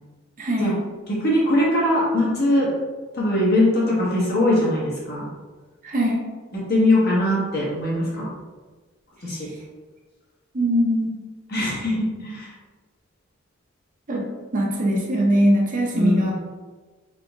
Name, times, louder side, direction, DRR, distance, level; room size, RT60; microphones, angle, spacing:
voice 1, 0.4-0.8 5.8-6.2 10.5-11.2 14.1-14.3 14.5-16.3, equal, 40° right, -1 dB, 0.7 m, -21 dB
voice 2, 1.1-2.7 3.1-5.3 6.5-8.3 9.2-9.5 11.5-12.5 15.9-16.3, left 1 dB, 55° left, -5 dB, 1.2 m, -21 dB
4.0 x 3.8 x 2.4 m, 1.3 s
head